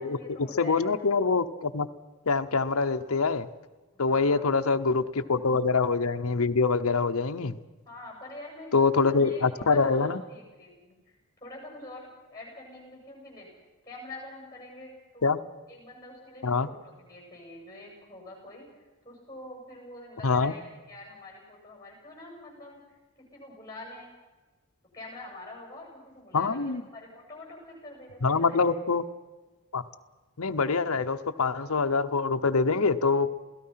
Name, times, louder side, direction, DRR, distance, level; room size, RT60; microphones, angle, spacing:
voice 1, 0.0-0.9 3.9-4.9 5.2-5.5 7.8-9.4 9.7-13.5 13.8-15.2 15.7-18.6 19.0-22.8 23.3-24.1 24.9-28.7, left 2 dB, 15° left, 0 dB, 7.6 m, -45 dB
voice 2, 0.6-1.9 2.3-3.5 4.0-7.6 8.7-10.2 15.2-15.4 16.4-16.7 20.2-20.5 26.3-26.8 28.2-29.0 29.7-29.8 30.4-33.3, left 4 dB, 80° left, 8 dB, 0.8 m, -25 dB
28.0 x 17.0 x 5.7 m, 1.2 s
head